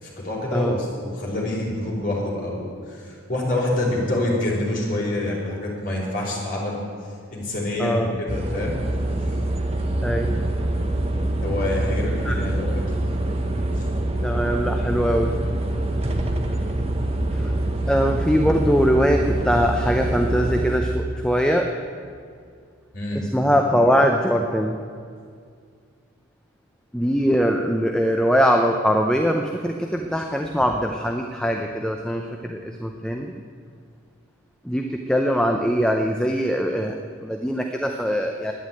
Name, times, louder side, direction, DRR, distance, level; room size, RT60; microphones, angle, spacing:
voice 1, 0.0-6.8 7.3-8.8 11.4-12.8 13.7-13.8 22.9-23.3, left 1 dB, 40° left, -5 dB, 4.4 m, -26 dB
voice 2, 7.8-8.2 10.0-10.4 12.2-12.3 14.2-15.4 17.3-17.5 17.9-21.7 23.1-24.8 26.9-33.3 34.6-38.5, equal, 5° left, 3 dB, 0.6 m, -22 dB
sound 1, 8.3-20.8, right 1 dB, 30° right, 1.1 m, -25 dB
11.5 x 9.5 x 9.1 m, 2.2 s
head